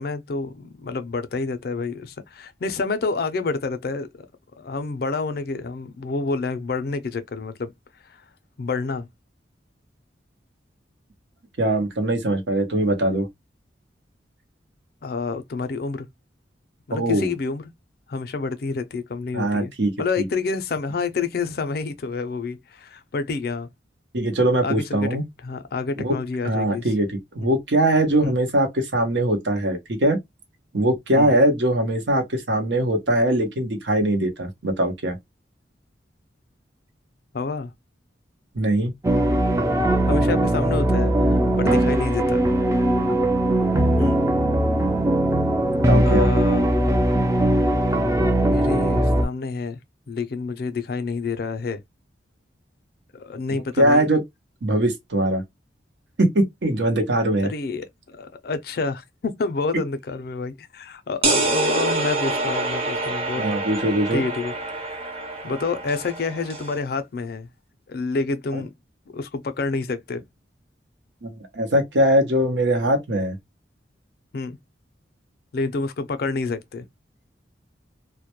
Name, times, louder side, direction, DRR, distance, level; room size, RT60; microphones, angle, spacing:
voice 1, 0.0-4.3 4.6-7.7 8.6-9.1 15.0-16.1 16.9-17.7 18.1-19.7 20.0-23.7 24.6-25.1 25.4-26.9 27.4-27.5 28.2-28.3 31.2-31.4 37.3-37.7 40.1-42.4 44.0-44.2 46.0-46.7 48.3-49.8 50.1-51.8 53.1-54.1 57.4-63.5 64.1-67.5 67.9-68.7 69.1-70.2 74.3-74.6 75.5-76.8, left 4 dB, 55° left, 0.4 m, -28 dB
voice 2, 11.6-13.3 16.9-17.3 19.3-19.9 24.1-25.2 26.0-26.1 26.4-27.1 27.3-30.2 30.7-35.2 38.6-38.9 41.7-41.8 45.9-46.3 53.8-54.2 54.6-55.4 56.2-57.5 63.4-64.2 68.5-68.6 71.2-73.3, right 1 dB, 70° right, 0.8 m, -21 dB
sound 1, 39.0-49.3, right 1 dB, 15° right, 0.3 m, -20 dB
sound 2, 61.2-66.8, right 2 dB, 30° right, 0.7 m, -26 dB
2.1 x 2.1 x 2.8 m
head